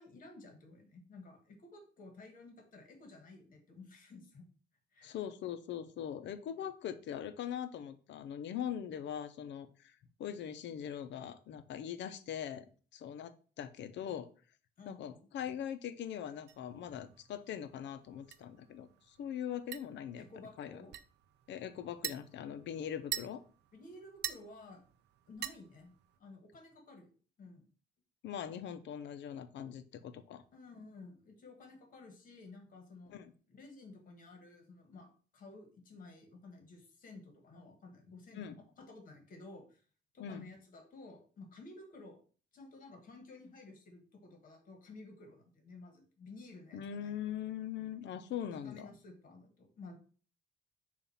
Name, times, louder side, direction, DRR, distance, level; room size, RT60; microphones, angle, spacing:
voice 1, 0.0-4.4 4.9-5.1 14.8-15.3 20.2-20.9 23.7-24.8 25.3-25.9 26.2-27.1 27.4-27.7 30.5-33.1 33.5-39.8 40.1-42.2 42.5-47.1 48.3-49.9, left 3 dB, 45° left, 3 dB, 1.5 m, -53 dB
voice 2, 5.0-9.9 10.2-12.6 12.9-14.3 14.9-20.3 20.6-20.8 21.5-23.4 28.2-30.4 33.1-33.3 38.3-38.6 40.2-40.4 46.7-48.9, left 9 dB, 70° left, 11 dB, 0.7 m, -41 dB
sound 1, 16.5-26.2, right 11 dB, 60° right, 0.4 m, -47 dB
7.0 x 2.5 x 5.6 m, 0.40 s
cardioid pair, 175°, 19 cm